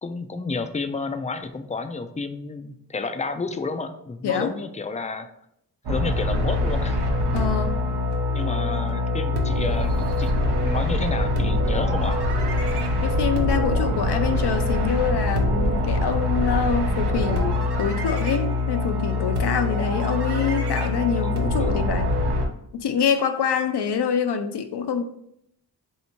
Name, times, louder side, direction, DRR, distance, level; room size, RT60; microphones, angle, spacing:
voice 1, 0.0-5.3 5.9-7.0 8.3-12.2 21.2-21.3 21.6-21.7, left 4 dB, 20° left, 8 dB, 0.4 m, -31 dB
voice 2, 4.2-4.5 7.3-7.7 13.0-22.1 22.7-25.0, left 6 dB, 75° left, 7 dB, 0.6 m, -25 dB
sound 1, 5.9-22.5, left 2 dB, 75° right, 0.8 m, -23 dB
3.4 x 2.8 x 4.3 m, 0.74 s
wide cardioid pair, 75°, 41 cm